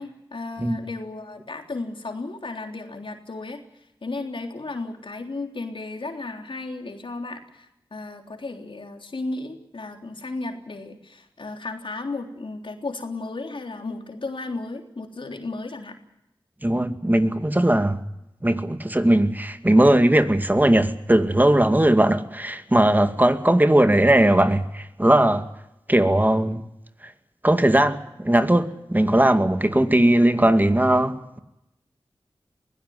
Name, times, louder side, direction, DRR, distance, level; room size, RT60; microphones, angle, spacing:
voice 1, 0.0-3.6 4.0-7.7 7.9-16.0, left 3 dB, 70° left, 3.5 m, -34 dB
voice 2, 16.6-18.0 18.4-25.4 25.9-26.6 27.4-31.4, right 1 dB, 20° right, 2.2 m, -19 dB
22.5 x 17.0 x 9.5 m
cardioid pair, 40°, 9 cm